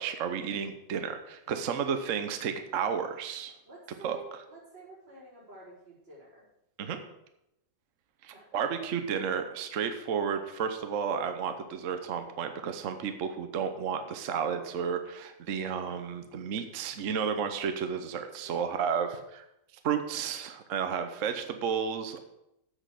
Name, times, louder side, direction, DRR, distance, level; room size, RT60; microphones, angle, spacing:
voice 1, 0.0-3.5 4.0-4.2 6.8-7.0 8.2-19.1 19.3-19.4 19.8-22.2, right 7 dB, 50° right, 7 dB, 1.1 m, -32 dB
voice 2, 3.6-6.4 8.2-8.7 18.5-18.6, right 2 dB, 90° right, -7 dB, 5.4 m, -50 dB
8.2 x 6.4 x 7.6 m, 0.84 s
omnidirectional pair, 2.0 m